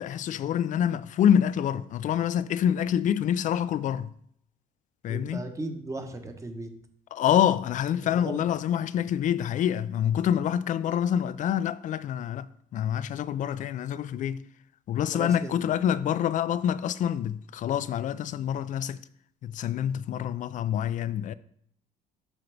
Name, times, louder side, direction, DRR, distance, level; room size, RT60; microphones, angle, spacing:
voice 1, 0.0-4.1 5.0-5.5 7.1-14.4 14.9-19.0 19.4-21.3, left 9 dB, 50° left, 0.4 m, -26 dB
voice 2, 5.1-6.7 8.0-8.4 15.1-15.6, right 2 dB, 20° right, 1.0 m, -37 dB
7.9 x 5.8 x 3.3 m
cardioid pair, 110°, 17 cm